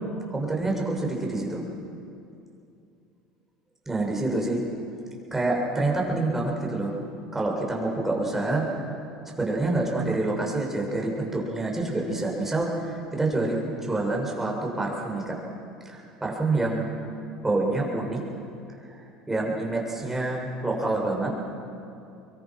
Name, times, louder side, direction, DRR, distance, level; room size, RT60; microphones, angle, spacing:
voice 1, 0.3-1.6 3.9-4.6 5.3-6.9 7.3-8.7 9.4-15.4 15.9-17.0 17.4-18.2 19.3-21.3, right 2 dB, 10° right, -2 dB, 7.3 m, -27 dB
26.5 x 23.0 x 6.2 m, 2.6 s
hypercardioid pair, 75°, 3 cm